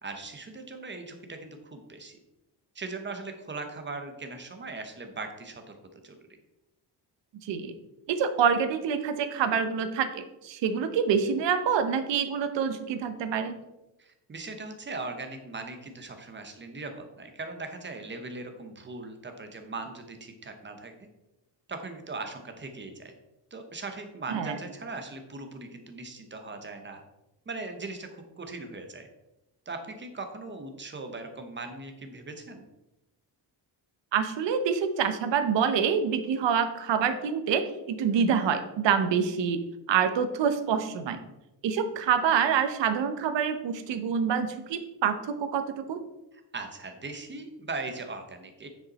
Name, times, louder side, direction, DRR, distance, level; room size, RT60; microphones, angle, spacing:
voice 1, 0.0-2.2 2.7-6.4 14.0-20.9 21.7-23.1 23.5-27.0 27.5-29.1 29.7-32.7 46.5-48.7, right 3 dB, 25° right, 6 dB, 0.9 m, -39 dB
voice 2, 7.4-7.7 8.1-13.6 24.3-24.6 34.1-39.6 39.9-41.2 41.6-46.0, right 7 dB, 75° right, 9 dB, 1.0 m, -26 dB
9.2 x 5.3 x 4.1 m, 0.96 s
cardioid pair, 160°, 44 cm